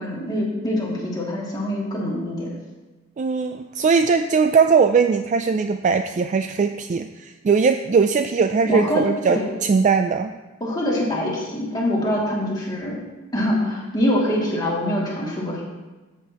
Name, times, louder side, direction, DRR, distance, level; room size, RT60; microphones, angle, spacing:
voice 1, 0.0-2.5 8.6-9.5 10.6-13.0 13.3-15.6, left 1 dB, 20° left, -5 dB, 2.4 m, -24 dB
voice 2, 3.2-10.3, right 5 dB, 40° right, 8 dB, 0.3 m, -20 dB
13.5 x 7.8 x 3.0 m, 1.2 s
head